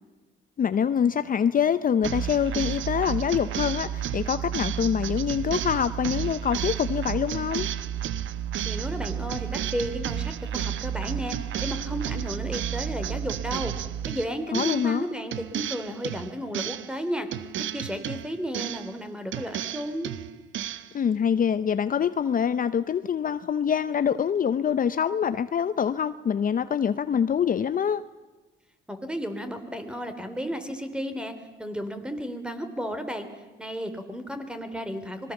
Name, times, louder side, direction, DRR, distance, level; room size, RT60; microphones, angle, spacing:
voice 1, 0.6-7.7 14.5-15.1 20.9-28.0, left 8 dB, 45° left, 13 dB, 0.7 m, -25 dB
sound 1, 2.0-15.0 15.3-17.0 17.3-19.0 19.3-20.9, right 9 dB, 75° right, 1.0 m, -32 dB
voice 2, 8.7-11.3 11.6-13.7 14.1-17.3 17.6-20.1 28.9-31.3 31.6-33.3 33.6-35.3, equal, 5° right, 8 dB, 3.5 m, -33 dB
26.0 x 21.5 x 7.2 m, 1.2 s
cardioid pair, 90°, 20 cm